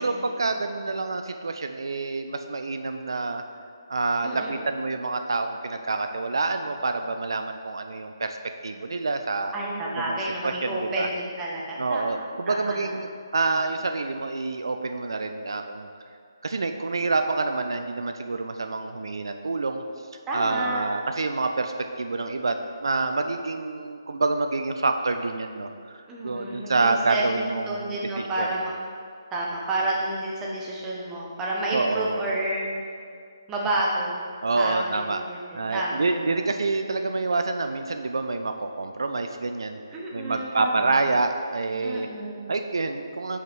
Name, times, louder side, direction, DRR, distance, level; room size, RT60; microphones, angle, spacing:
voice 1, 0.0-3.4 3.9-8.4 8.6-9.5 10.0-10.2 10.4-11.1 11.8-15.9 16.4-19.8 20.3-28.5 31.7-32.2 34.4-35.2 35.5-42.1 42.5-43.4, right 3 dB, 75° right, 6 dB, 0.4 m, -27 dB
voice 2, 4.2-4.6 9.5-12.8 20.3-20.8 26.1-28.7 29.3-33.0 33.5-34.2 34.6-36.4 39.9-41.0 41.8-42.5, right 1 dB, 15° right, -4 dB, 1.0 m, -30 dB
5.5 x 4.8 x 5.4 m, 2.2 s
figure-of-eight pair, 150°, 2 cm